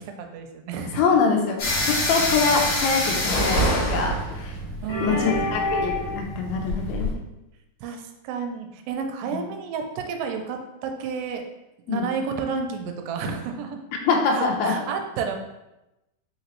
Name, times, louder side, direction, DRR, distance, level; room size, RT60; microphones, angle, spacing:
voice 1, 0.2-1.0 4.8-5.7 7.8-11.4 11.9-13.8 14.3-15.4, right 5 dB, 85° right, 5 dB, 2.2 m, -31 dB
voice 2, 0.9-4.6 5.0-7.1 9.3-9.4 11.9-12.1 14.1-14.8, left 5 dB, 90° left, 2 dB, 2.5 m, -24 dB
sound 1, 1.6-7.1, left 1 dB, 60° left, 2.1 m, -26 dB
5.5 x 2.9 x 3.0 m, 0.95 s
omnidirectional pair, 4.2 m